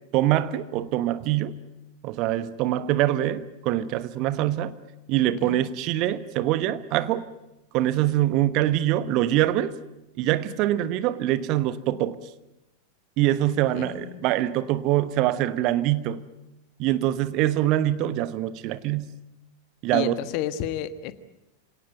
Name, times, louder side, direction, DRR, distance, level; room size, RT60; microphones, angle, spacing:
voice 1, 0.1-1.6 2.0-4.7 5.1-7.3 7.7-9.7 10.2-12.2 13.2-16.2 16.8-19.1 19.8-20.1, right 13 dB, 40° right, 1.1 m, -24 dB
voice 2, 5.2-5.6 13.7-14.3 19.9-21.1, left 11 dB, 45° left, 1.4 m, -32 dB
26.5 x 18.0 x 9.1 m
figure-of-eight pair, 90°, 0 cm